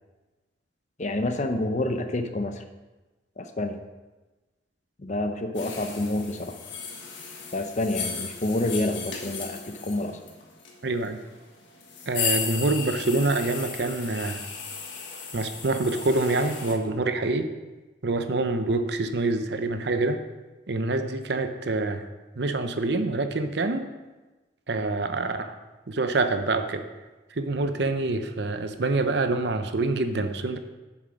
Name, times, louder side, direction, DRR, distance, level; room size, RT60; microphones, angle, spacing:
voice 1, 1.0-2.6 3.4-3.8 5.0-6.6 7.5-10.2, left 1 dB, 40° left, 7 dB, 0.7 m, -28 dB
sound 1, 5.5-16.7, left 6 dB, 80° left, 1.5 m, -35 dB
voice 2, 10.8-11.2 12.1-14.4 15.3-17.5 18.0-20.2 20.7-22.1 22.4-23.8 24.7-25.5 25.9-26.8 27.3-30.6, right 2 dB, 60° right, 9 dB, 0.7 m, -26 dB
7.4 x 7.3 x 5.0 m, 1.2 s
head